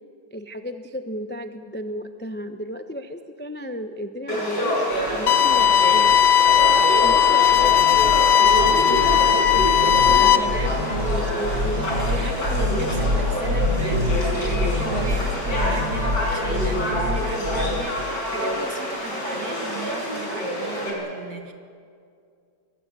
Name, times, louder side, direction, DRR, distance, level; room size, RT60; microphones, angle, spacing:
voice 1, 0.3-4.8 5.1-6.2 7.0-7.7 8.4-10.7 11.0-11.9, equal, 10° left, 7 dB, 0.5 m, -33 dB
Conversation / Crowd, 4.3-20.9, equal, 60° left, 6.5 m, -27 dB
sound 1, 4.9-5.2 5.4-6.2 6.4-7.2 7.4-17.7, left 1 dB, 90° right, 5.0 m, -27 dB
sound 2, 5.3-10.4, left 9 dB, 90° left, 1.8 m, -17 dB
voice 2, 10.1-11.1 11.3-21.5, right 4 dB, 50° right, 5 dB, 2.5 m, -36 dB
23.5 x 23.5 x 8.4 m, 2.3 s
omnidirectional pair, 2.2 m